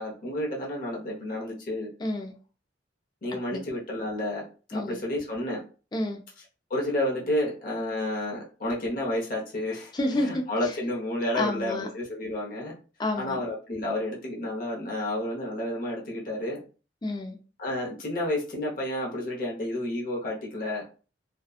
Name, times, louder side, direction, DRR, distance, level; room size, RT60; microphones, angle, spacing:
voice 1, 0.0-1.9 3.2-4.4 4.7-5.6 6.7-12.7 13.2-16.6 17.6-20.8, left 1 dB, 50° left, -3 dB, 0.8 m, -31 dB
voice 2, 2.0-2.3 3.5-3.6 4.7-5.0 5.9-6.2 9.9-10.4 11.3-11.9 13.0-13.4 17.0-17.4, left 1 dB, 25° left, 2 dB, 0.4 m, -29 dB
2.7 x 2.2 x 2.3 m, 0.36 s
head